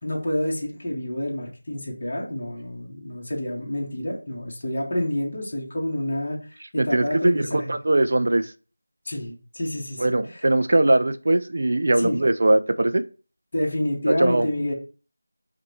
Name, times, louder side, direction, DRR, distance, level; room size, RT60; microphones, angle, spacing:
voice 1, 0.0-6.4 6.7-7.7 9.0-10.4 12.0-12.2 13.5-14.7, left 1 dB, 35° left, -3 dB, 1.7 m, -28 dB
voice 2, 6.8-8.5 10.0-13.0 14.1-14.5, right 2 dB, 50° right, 10 dB, 0.4 m, -21 dB
5.1 x 2.6 x 3.2 m, 0.36 s
figure-of-eight pair, 170°, 0 cm